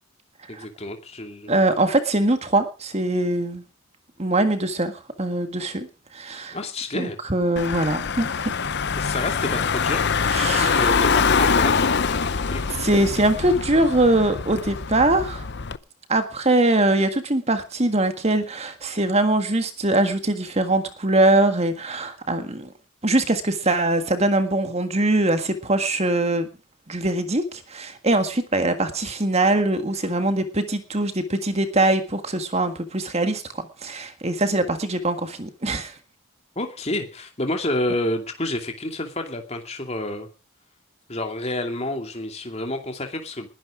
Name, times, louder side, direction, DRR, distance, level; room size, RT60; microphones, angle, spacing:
voice 1, 0.5-1.5 6.5-7.2 9.0-10.1 10.6-11.9 12.3-12.8 36.6-40.3 41.1-43.5, left 1 dB, 30° left, 5 dB, 2.5 m, -29 dB
voice 2, 1.5-3.6 4.2-4.9 5.2-5.9 6.1-6.6 6.9-8.5 10.3-10.9 12.8-15.5 16.1-22.7 23.0-26.5 26.9-33.4 33.8-35.9, right 2 dB, 30° right, 8 dB, 1.7 m, -22 dB
Car / Engine, 7.6-15.8, left 5 dB, 50° left, 0.7 m, -24 dB
20.5 x 11.0 x 5.0 m, 0.35 s
head